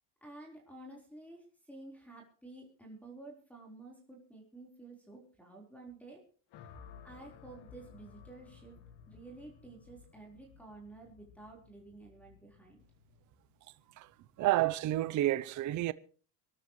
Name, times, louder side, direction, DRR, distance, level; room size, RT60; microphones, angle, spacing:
voice 1, 0.2-6.2 7.0-8.8 9.1-12.8, right 2 dB, 5° left, 4.0 m, -51 dB
sound 1, 6.5-14.8, left 6 dB, 55° left, 2.0 m, -57 dB
voice 2, 14.4-15.9, right 15 dB, 40° right, 0.6 m, -29 dB
25.5 x 12.5 x 3.1 m
cardioid pair, 135°, 47 cm